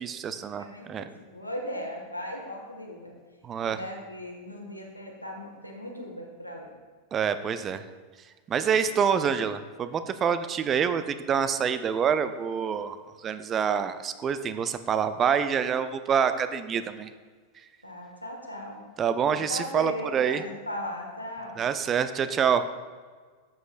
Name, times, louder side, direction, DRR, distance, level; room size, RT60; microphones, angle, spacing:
voice 1, 0.0-1.0 3.4-3.8 7.1-7.8 8.5-17.1 19.0-20.4 21.6-22.6, right 7 dB, 25° right, 11 dB, 0.5 m, -26 dB
voice 2, 0.6-3.1 3.6-6.7 17.8-18.8 19.3-21.6, left 1 dB, 85° left, 0 dB, 1.6 m, -38 dB
12.5 x 8.1 x 2.5 m, 1.5 s
figure-of-eight pair, 90°, 0 cm